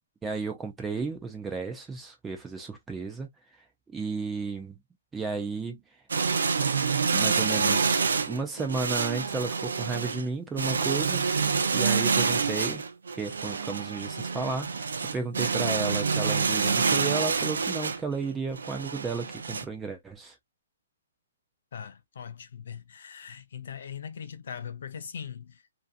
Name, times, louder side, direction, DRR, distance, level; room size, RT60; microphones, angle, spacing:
voice 1, 0.2-3.3 3.6-4.8 5.1-5.8 7.1-12.8 13.1-20.4, right 4 dB, 10° right, 0.5 m, -33 dB
sound 1, 6.1-19.6, right 5 dB, 85° right, 0.5 m, -27 dB
voice 2, 21.7-25.6, left 7 dB, 55° left, 0.5 m, -40 dB
2.6 x 2.4 x 2.4 m
hypercardioid pair, 165°, 0 cm